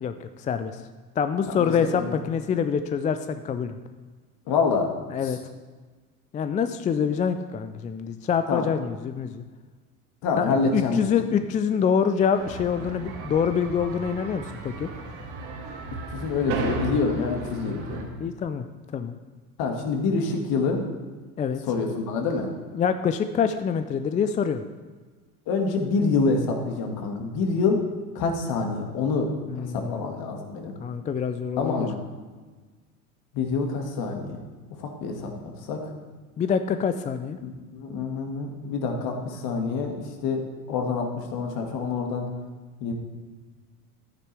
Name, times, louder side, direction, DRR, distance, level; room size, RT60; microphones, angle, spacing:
voice 1, 0.0-0.8 1.2-3.8 5.1-5.4 6.3-9.4 10.4-14.9 18.2-18.7 18.9-19.1 21.4-21.6 22.7-24.6 29.5-30.1 30.8-31.9 36.4-37.4, left 7 dB, 20° left, 9 dB, 0.3 m, -26 dB
voice 2, 1.5-2.2 4.5-4.9 8.5-8.7 10.2-11.3 16.1-18.1 19.6-20.8 21.7-22.5 25.5-27.8 28.2-29.3 29.5-30.7 31.6-32.0 33.3-34.4 34.8-35.9 37.4-40.4 40.7-42.3 42.8-42.9, left 4 dB, 55° left, 3 dB, 1.9 m, -26 dB
sound 1, 12.3-18.0, right 4 dB, 55° right, 2.0 m, -35 dB
11.5 x 9.8 x 3.3 m, 1.4 s
hypercardioid pair, 70°, 45 cm